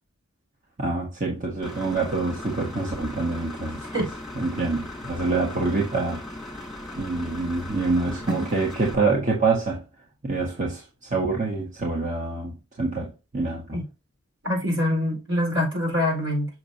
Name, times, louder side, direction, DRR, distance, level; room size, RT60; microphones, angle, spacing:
voice 1, 0.8-3.9 4.3-6.2 7.0-9.8 10.2-10.8 11.1-12.5 12.8-13.8, right 3 dB, 35° right, 1.6 m, -26 dB
Engine / Mechanisms, 1.6-9.0, left 1 dB, ahead, 1.8 m, -38 dB
voice 2, 14.4-16.5, left 1 dB, 65° right, 4.6 m, -24 dB
7.2 x 6.3 x 2.8 m
head